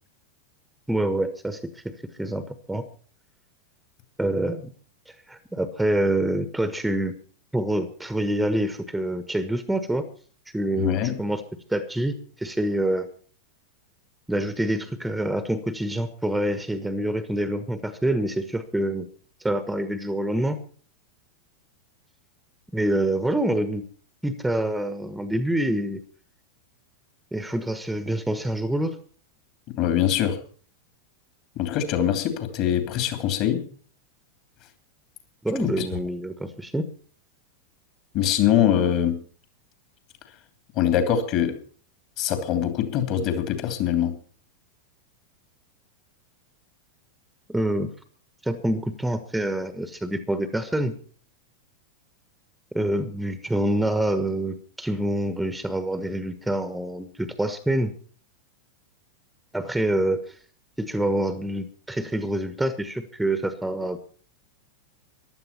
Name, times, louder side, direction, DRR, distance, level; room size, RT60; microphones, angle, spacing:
voice 1, 0.9-1.9 2.2-2.9 4.2-4.7 5.1-7.1 7.5-10.1 10.5-11.4 11.7-13.1 14.3-19.1 19.4-20.6 22.7-23.8 24.2-26.0 27.3-29.0 35.4-36.9 47.5-47.9 48.4-50.9 52.7-57.9 59.5-60.4 60.8-64.0, right 1 dB, 5° right, 11 dB, 1.3 m, -26 dB
voice 2, 10.8-11.2 29.7-30.4 31.6-33.6 35.8-35.9 38.1-39.2 40.7-41.6 42.2-44.2, left 10 dB, 40° left, 8 dB, 2.9 m, -23 dB
15.0 x 11.5 x 5.7 m, 0.44 s
figure-of-eight pair, 90°, 0 cm